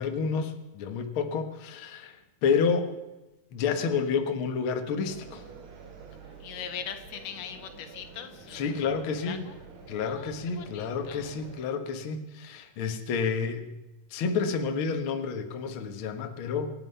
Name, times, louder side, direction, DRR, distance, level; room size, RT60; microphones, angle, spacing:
voice 1, 0.0-2.9 3.5-5.4 8.5-9.5 9.9-13.7 14.1-16.7, left 5 dB, 50° left, 6 dB, 1.8 m, -29 dB
sound 1, 5.0-11.6, right 5 dB, 60° right, 3.1 m, -48 dB
voice 2, 6.4-8.7 9.2-9.6 10.0-11.4, left 8 dB, 90° left, 8 dB, 3.0 m, -41 dB
26.0 x 9.8 x 5.6 m, 1.1 s
omnidirectional pair, 3.7 m